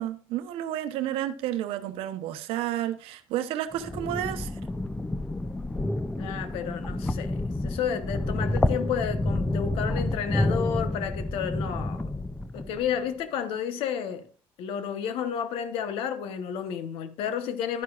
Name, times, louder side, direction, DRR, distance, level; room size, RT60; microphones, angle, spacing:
voice 1, 0.0-4.5, right 12 dB, 85° right, 0.8 m, -31 dB
sound 1, 3.7-12.9, left 1 dB, 10° left, 0.6 m, -29 dB
voice 2, 6.2-12.0 12.5-14.3 14.6-17.8, left 8 dB, 85° left, 1.1 m, -31 dB
11.0 x 9.6 x 2.4 m
cardioid pair, 105°, 9 cm